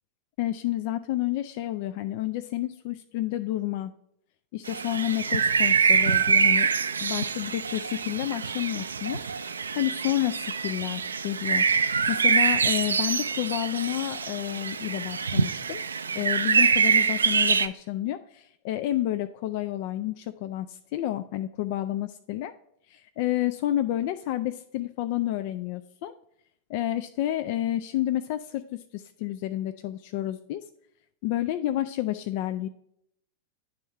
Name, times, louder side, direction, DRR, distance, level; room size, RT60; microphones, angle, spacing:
voice 1, 0.4-3.9 4.5-6.7 7.0-15.8 16.1-22.5 22.9-26.1 26.7-30.6 31.2-32.7, left 14 dB, 45° left, 10 dB, 0.3 m, -30 dB
sound 1, 4.7-17.7, right 5 dB, 75° right, 0.3 m, -25 dB
9.7 x 3.6 x 4.2 m, 0.73 s
figure-of-eight pair, 90°, 0 cm